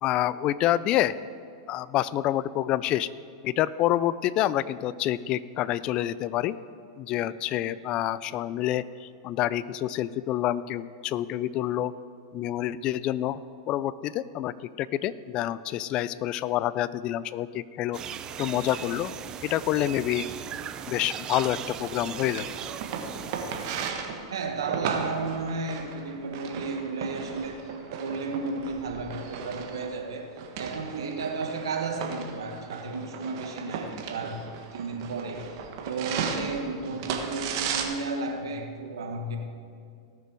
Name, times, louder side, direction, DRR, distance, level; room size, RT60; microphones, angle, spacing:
voice 1, 0.0-1.1 1.7-3.1 3.4-6.6 7.0-11.9 12.3-13.4 13.7-18.0 18.4-19.1 19.4-20.3 20.9-22.5, left 13 dB, 40° left, 18 dB, 0.4 m, -27 dB
sound 1, 17.9-23.9, right 9 dB, 30° right, 0.5 m, -38 dB
sound 2, 21.8-37.8, right 6 dB, 60° right, 1.5 m, -36 dB
voice 2, 24.3-27.7 28.0-35.6 35.8-39.4, right 3 dB, 90° right, 4 dB, 1.6 m, -33 dB
18.5 x 6.8 x 4.7 m, 2.3 s
hypercardioid pair, 125°, 2 cm